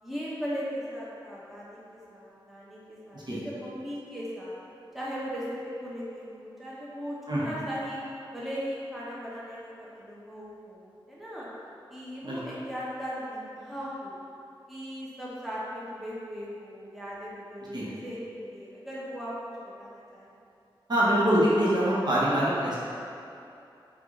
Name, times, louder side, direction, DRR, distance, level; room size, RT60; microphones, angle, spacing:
voice 1, 0.0-4.6 4.9-8.0 8.3-11.5 11.9-14.2 14.7-19.3 19.8-20.3, equal, ahead, -8 dB, 1.0 m, -38 dB
voice 2, 20.9-22.8, right 1 dB, 50° right, -8 dB, 1.1 m, -24 dB
4.5 x 2.5 x 3.8 m, 2.7 s
cardioid pair, 60°, 9 cm